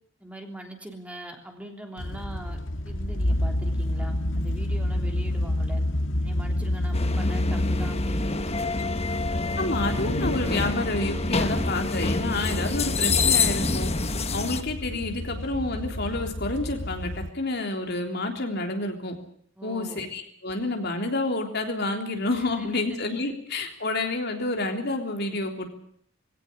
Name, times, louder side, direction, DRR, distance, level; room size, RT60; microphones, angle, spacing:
voice 1, 0.2-2.6 2.8-5.8 6.2-8.5 19.6-20.0 22.4-23.0, right 1 dB, 5° right, 3 dB, 3.2 m, -41 dB
sound 1, 2.0-17.3, left 1 dB, 80° left, 1.9 m, -29 dB
sound 2, 6.9-14.6, left 4 dB, 35° left, 1.3 m, -27 dB
voice 2, 9.6-13.9 14.3-19.1 19.6-25.7, left 2 dB, 60° left, 4 dB, 3.6 m, -29 dB
20.5 x 17.0 x 10.0 m, 0.64 s
head